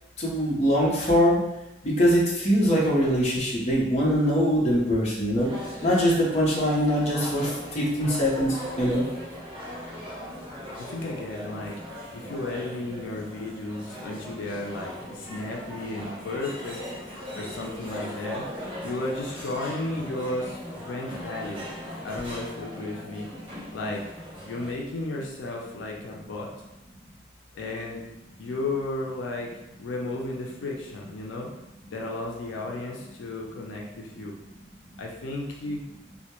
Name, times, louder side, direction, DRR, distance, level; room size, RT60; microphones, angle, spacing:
voice 1, 0.2-1.4 1.8-5.5 5.8-9.0, equal, 35° left, -5 dB, 0.6 m, -23 dB
sound 1, 5.4-24.7, equal, 25° right, 0.7 m, -39 dB
voice 2, 10.8-11.7 12.1-16.8 17.3-18.5 18.8-21.7 22.0-23.3 23.7-24.1 24.4-26.5 27.5-28.0 28.4-29.5 29.8-31.5 31.9-34.4 35.0-35.8, left 2 dB, 85° left, -1 dB, 0.4 m, -33 dB
2.2 x 2.1 x 2.9 m, 0.92 s
head